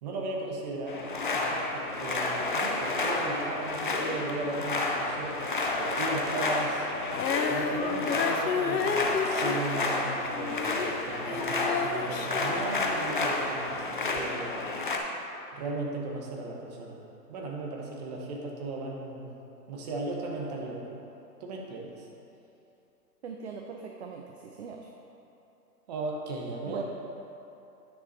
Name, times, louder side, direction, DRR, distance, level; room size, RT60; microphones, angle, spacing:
voice 1, 0.0-1.0 1.3-6.9 7.5-14.5 15.5-17.0 17.3-19.3 19.7-20.8 21.4-22.1 25.9-26.8, right 2 dB, 25° right, -1 dB, 0.9 m, -36 dB
sound 1, 0.9-15.0, left 2 dB, 35° left, 0.4 m, -30 dB
Female singing, 7.1-13.5 14.2-14.3, left 5 dB, 85° left, 0.8 m, -32 dB
voice 2, 23.2-24.9 26.6-26.8, right 6 dB, 45° right, 2 dB, 0.5 m, -41 dB
9.6 x 6.0 x 4.0 m, 2.9 s
hypercardioid pair, 160°, 48 cm